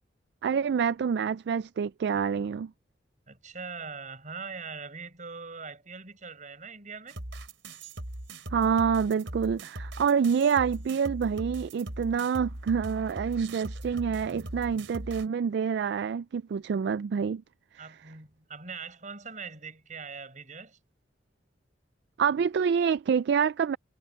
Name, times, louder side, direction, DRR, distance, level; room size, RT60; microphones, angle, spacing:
voice 1, 0.4-2.7 8.5-17.4 22.2-23.8, right 6 dB, 60° right, 0.3 m, -27 dB
voice 2, 3.3-7.2 17.8-20.8, right 5 dB, 40° right, 6.3 m, -42 dB
sound 1, 7.1-15.3, right 1 dB, 90° right, 3.6 m, -40 dB
head